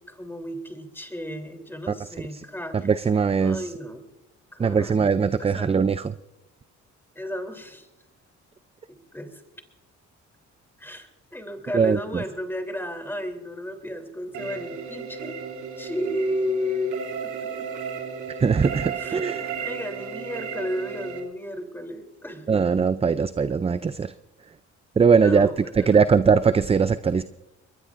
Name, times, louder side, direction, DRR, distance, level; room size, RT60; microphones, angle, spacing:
voice 1, 0.1-2.9 3.4-4.0 4.5-5.0 5.4-5.7 7.1-7.9 8.9-9.3 10.8-15.4 15.8-17.7 19.0-19.3 19.6-22.6 25.2-26.1, left 1 dB, 5° left, 4 dB, 3.3 m, -33 dB
voice 2, 1.9-2.4 2.8-3.7 4.6-6.1 11.7-12.2 18.4-19.5 22.5-24.1 25.0-25.5 25.7-27.2, right 5 dB, 20° right, 13 dB, 0.4 m, -21 dB
sound 1, 14.3-21.2, right 6 dB, 75° right, 3.0 m, -34 dB
22.0 x 21.5 x 2.6 m, 0.96 s
cardioid pair, 90°, 30 cm